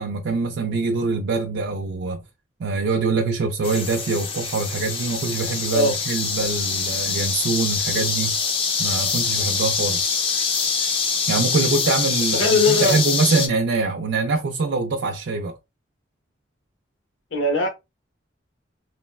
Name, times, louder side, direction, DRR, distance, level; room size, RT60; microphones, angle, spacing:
voice 1, 0.0-2.2 2.6-8.3 8.8-10.1 11.3-15.6, right 3 dB, 65° right, 0.4 m, -24 dB
sound 1, 3.6-13.5, left 5 dB, 30° left, 0.4 m, -24 dB
voice 2, 12.3-13.0 17.3-17.7, left 2 dB, 90° left, 0.7 m, -20 dB
3.2 x 2.1 x 2.3 m
head